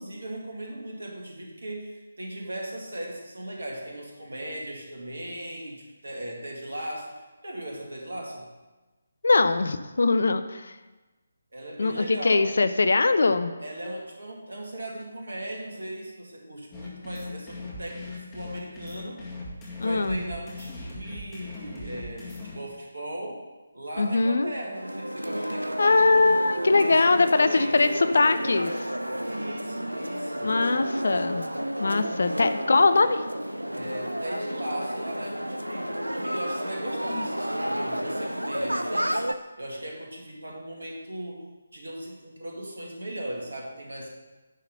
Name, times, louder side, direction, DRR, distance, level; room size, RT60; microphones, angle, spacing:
voice 1, 0.0-8.5 11.5-12.5 13.6-19.3 19.8-23.5 23.7-26.4 26.8-27.9 29.2-30.6 33.7-44.1, right 1 dB, 65° right, -1 dB, 2.1 m, -38 dB
voice 2, 9.2-10.7 11.8-13.5 19.8-20.2 24.0-24.5 25.8-28.9 30.4-31.5 31.8-33.2 37.1-37.2, left 3 dB, 60° left, 10 dB, 0.5 m, -22 dB
sound 1, 16.7-22.6, left 2 dB, 15° left, 1.8 m, -39 dB
sound 2, 24.7-39.3, equal, 85° right, 0.5 m, -31 dB
9.8 x 4.0 x 6.6 m, 1.2 s
figure-of-eight pair, 150°, 0 cm